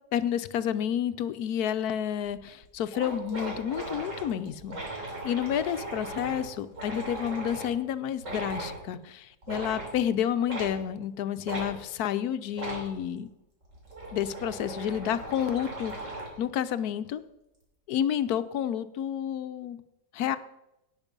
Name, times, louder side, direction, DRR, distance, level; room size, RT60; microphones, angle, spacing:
voice 1, 0.1-13.3 14.1-16.1 16.4-17.2 17.9-19.8 20.1-20.4, left 9 dB, 70° left, 13 dB, 1.1 m, -30 dB
sound 1, 2.3-2.4 2.6-2.7 2.9-7.7 8.2-8.8 9.4-10.0 10.5-10.7 11.5-11.7 12.5-12.9 13.6-16.4, right 1 dB, 50° right, 3.6 m, -38 dB
18.0 x 6.2 x 5.3 m, 0.89 s
omnidirectional pair, 1.8 m